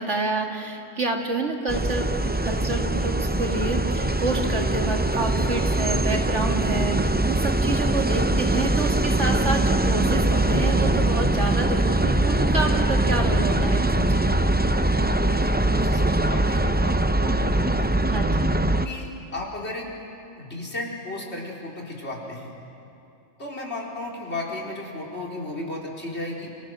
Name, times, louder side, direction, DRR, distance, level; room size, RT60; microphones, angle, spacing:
voice 1, 0.0-14.4 18.1-18.4, right 3 dB, 70° right, 2 dB, 2.6 m, -29 dB
sound 1, 1.7-18.9, right 1 dB, 15° right, 0.4 m, -22 dB
voice 2, 15.2-17.9 18.7-19.9 20.4-22.5 23.4-26.5, left 2 dB, 60° left, -2 dB, 4.2 m, -34 dB
29.0 x 27.0 x 6.2 m, 2.6 s
omnidirectional pair, 1.3 m